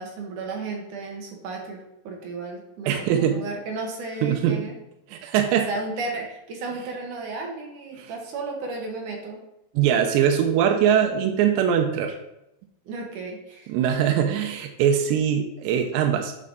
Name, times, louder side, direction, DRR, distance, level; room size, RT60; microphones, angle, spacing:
voice 1, 0.0-4.7 5.7-9.4 12.9-13.7 14.0-14.1, right 3 dB, 60° right, 1 dB, 2.3 m, -34 dB
voice 2, 2.9-3.4 4.2-4.6 5.1-5.7 8.0-8.1 9.8-12.2 13.7-16.3, right 9 dB, 85° right, 3 dB, 3.0 m, -22 dB
9.7 x 5.6 x 3.9 m, 0.85 s
omnidirectional pair, 4.9 m